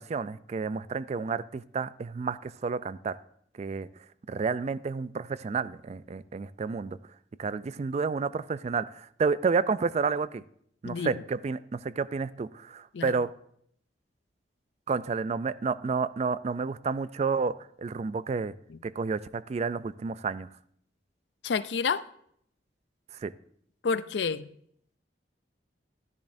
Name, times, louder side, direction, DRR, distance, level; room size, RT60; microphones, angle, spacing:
voice 1, 0.0-3.2 3.6-3.9 4.3-7.0 7.4-10.4 10.8-13.3 14.9-18.5 18.8-20.5 23.2-23.3, right 5 dB, 35° right, 0.3 m, -30 dB
voice 2, 10.8-11.2 12.9-13.1 18.7-18.8 21.4-22.1 23.8-24.5, left 5 dB, 75° left, 0.5 m, -29 dB
12.5 x 10.5 x 2.6 m
head